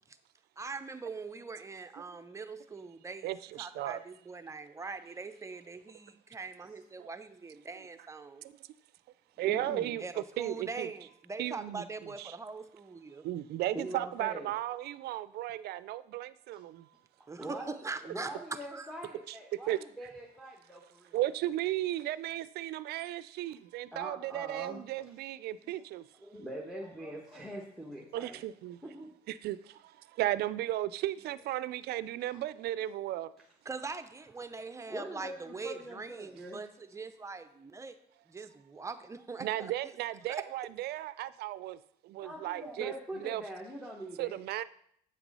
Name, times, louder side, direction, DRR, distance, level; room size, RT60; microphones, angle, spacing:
voice 1, 0.6-8.4 10.0-13.2 17.3-18.9 33.7-38.0 38.3-39.9 40.3-40.4, right 4 dB, 15° right, 10 dB, 0.7 m, -42 dB
voice 2, 3.2-4.0 7.0-7.1 9.4-10.9 11.4-12.4 13.2-16.9 19.3-19.4 19.7-19.8 21.1-26.0 28.1-28.8 29.3-29.6 30.2-33.3 39.4-41.8 42.0-42.9 43.2-43.4 44.2-44.6, right 14 dB, 70° right, 17 dB, 0.4 m, -35 dB
voice 3, 9.4-10.0 13.7-14.5 16.5-16.6 17.2-21.2 23.9-24.8 25.6-25.7 26.2-28.4 28.8-29.1 32.3-32.4 34.7-36.6 42.2-44.4, right 1 dB, ahead, -2 dB, 1.3 m, -43 dB
8.2 x 5.9 x 5.5 m, 0.68 s
cardioid pair, 110°, 17 cm